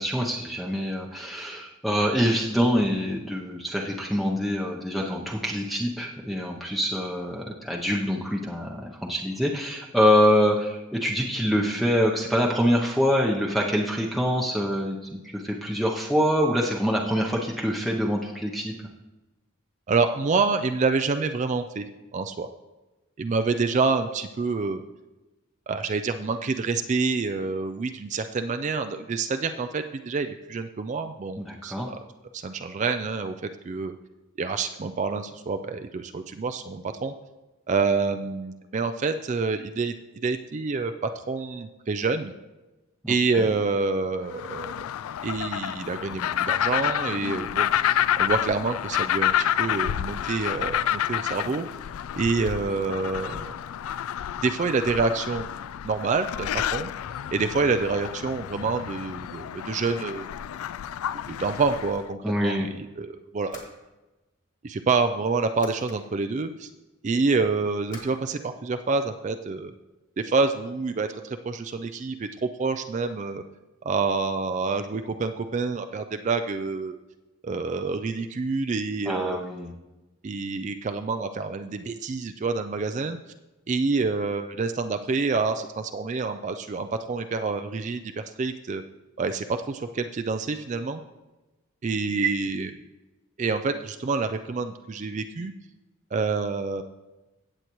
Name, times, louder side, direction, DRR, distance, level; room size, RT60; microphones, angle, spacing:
voice 1, 0.0-18.7 31.4-31.9 43.0-43.5 62.2-62.7 79.1-79.7, equal, ahead, -2 dB, 0.7 m, -25 dB
voice 2, 19.9-21.8 22.1-22.5 23.2-24.8 25.7-32.0 32.3-33.3 33.6-33.9 34.4-37.1 37.7-42.3 43.1-44.8 45.2-51.6 52.2-53.5 54.4-55.5 55.8-56.9 57.3-60.3 61.3-63.6 64.6-66.7 67.0-69.7 70.2-73.4 73.8-77.0 77.4-79.4 80.2-83.2 83.7-88.8 89.2-91.0 91.8-92.7 93.4-95.5 96.1-96.8, right 4 dB, 35° right, 7 dB, 0.3 m, -27 dB
sound 1, 44.3-62.0, left 10 dB, 85° left, 0.3 m, -29 dB
sound 2, 63.5-64.5 65.2-66.0 67.9-68.2, left 3 dB, 35° left, 2.1 m, -46 dB
16.5 x 7.9 x 3.0 m, 1.1 s
head